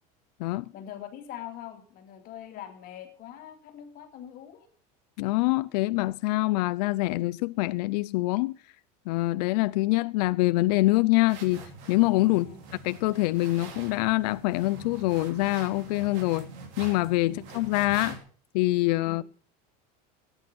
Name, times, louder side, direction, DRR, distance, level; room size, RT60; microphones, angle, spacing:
voice 1, 0.7-4.7 12.3-12.6 17.2-17.4 19.1-19.2, left 10 dB, 45° left, 2.4 m, -43 dB
voice 2, 5.2-8.5 9.1-12.5 12.8-16.5 16.8-18.2 18.5-19.3, left 20 dB, 85° left, 0.5 m, -25 dB
sound 1, 11.3-18.2, right 3 dB, 65° right, 3.0 m, -44 dB
13.5 x 9.0 x 6.0 m
cardioid pair, 145°, 20 cm